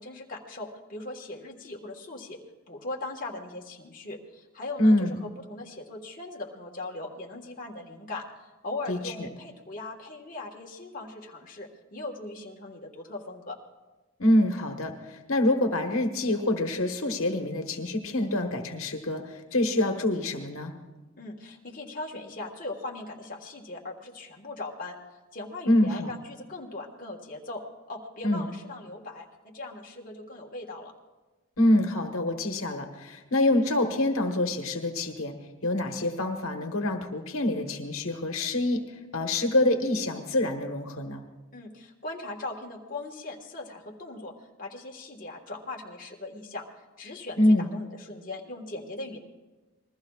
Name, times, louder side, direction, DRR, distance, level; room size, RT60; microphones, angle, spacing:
voice 1, 0.0-2.4 2.7-13.6 21.2-25.0 25.3-27.6 27.9-30.9 41.5-44.3 44.6-49.2, left 2 dB, 40° left, -1 dB, 1.5 m, -39 dB
voice 2, 4.8-5.2 8.9-9.3 14.2-20.7 25.7-26.1 28.2-28.5 31.6-35.3 35.6-38.8 39.1-41.2 47.4-47.7, left 1 dB, 75° left, 4 dB, 1.3 m, -26 dB
27.0 x 21.0 x 2.4 m, 1.2 s
head